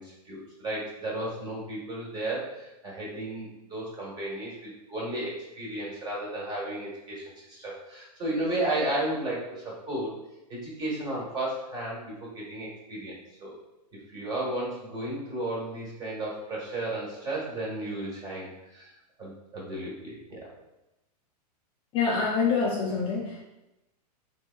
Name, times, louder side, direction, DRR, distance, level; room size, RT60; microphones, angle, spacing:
voice 1, 0.0-10.1 10.5-13.5 14.1-18.9 19.2-20.5, right 1 dB, 20° right, -4 dB, 1.2 m, -34 dB
voice 2, 21.9-23.4, left 5 dB, 25° left, -3 dB, 0.5 m, -26 dB
3.4 x 3.1 x 2.2 m, 0.93 s
hypercardioid pair, 130°, 21 cm